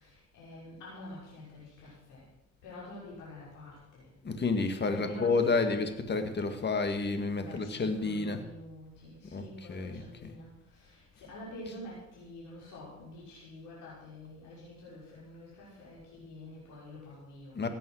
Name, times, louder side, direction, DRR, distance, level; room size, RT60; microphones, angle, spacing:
voice 1, 0.0-2.2 2.6-4.1 4.8-5.9 7.3-17.7, left 1 dB, 90° left, -7 dB, 5.8 m, -47 dB
voice 2, 4.2-8.4 9.3-10.3 17.5-17.7, left 3 dB, 35° left, 7 dB, 1.9 m, -30 dB
17.0 x 9.1 x 6.4 m, 0.86 s
cardioid pair, 90°, 30 cm